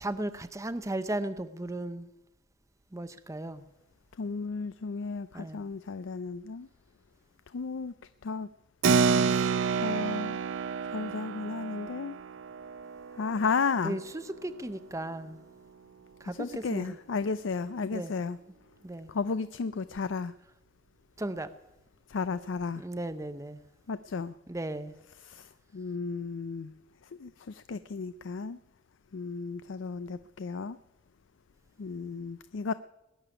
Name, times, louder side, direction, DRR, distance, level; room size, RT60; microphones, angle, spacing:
voice 1, 0.0-2.1 2.9-3.6 5.3-5.6 13.8-15.4 16.2-17.0 17.9-18.1 18.8-19.1 21.2-21.5 22.8-23.6 24.5-24.9, right 1 dB, 15° right, 0.6 m, -36 dB
voice 2, 4.2-6.7 7.5-7.9 8.2-8.5 9.3-10.4 10.9-12.2 13.2-14.0 16.3-18.4 19.1-20.3 22.1-22.8 23.9-24.3 25.2-26.7 27.2-28.6 29.1-30.8 31.8-32.7, left 4 dB, 65° left, 0.5 m, -34 dB
Keyboard (musical), 8.8-14.9, right 5 dB, 65° right, 0.5 m, -29 dB
20.0 x 6.9 x 10.0 m
head